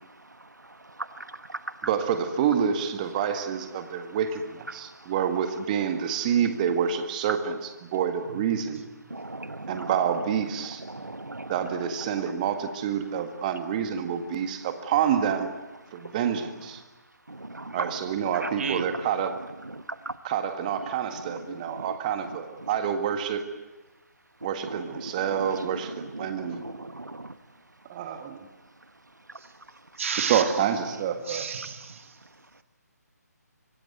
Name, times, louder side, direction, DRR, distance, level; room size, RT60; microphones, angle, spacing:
voice 1, 1.8-8.8 9.7-10.8 11.5-15.5 15.9-16.8 17.7-19.3 20.2-23.4 24.4-26.6 27.9-28.4 30.2-31.5, right 8 dB, 25° right, 1.8 m, -28 dB
voice 2, 9.1-9.9 10.9-11.5 17.4-17.8 18.4-18.5 20.1-20.2 26.4-27.3, right 2 dB, 85° right, 1.2 m, -38 dB
voice 3, 30.0-30.6 31.3-32.2, right 6 dB, 50° right, 2.3 m, -32 dB
25.5 x 19.5 x 9.4 m
figure-of-eight pair, 145°, 9 cm